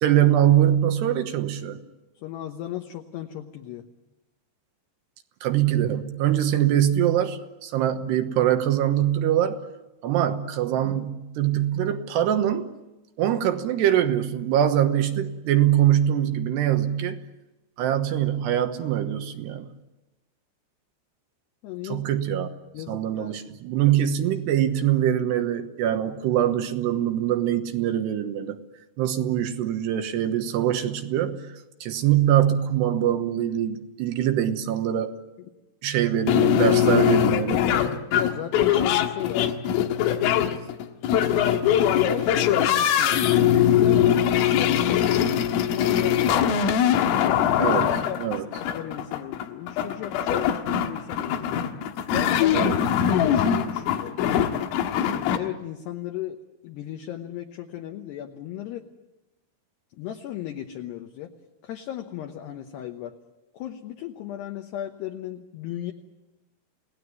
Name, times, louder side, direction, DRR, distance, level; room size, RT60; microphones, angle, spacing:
voice 1, 0.0-1.8 5.4-9.6 10.0-12.7 13.2-17.2 17.8-19.7 21.8-22.5 22.9-28.6 29.0-31.4 31.8-35.2 35.8-37.7 47.6-48.5 52.5-52.8, right 11 dB, 70° right, 8 dB, 2.9 m, -23 dB
voice 2, 2.2-3.9 21.6-22.1 22.7-23.4 38.1-39.4 42.0-47.3 48.0-48.2 48.5-51.6 52.1-52.7 53.1-54.2 54.9-56.4 56.6-58.9 59.9-61.3 61.6-63.1 63.5-65.9, left 12 dB, 70° left, 4 dB, 2.8 m, -36 dB
sound 1, 36.3-55.4, left 9 dB, 90° left, 4.0 m, -22 dB
29.0 x 18.0 x 9.7 m, 1.0 s
omnidirectional pair, 5.7 m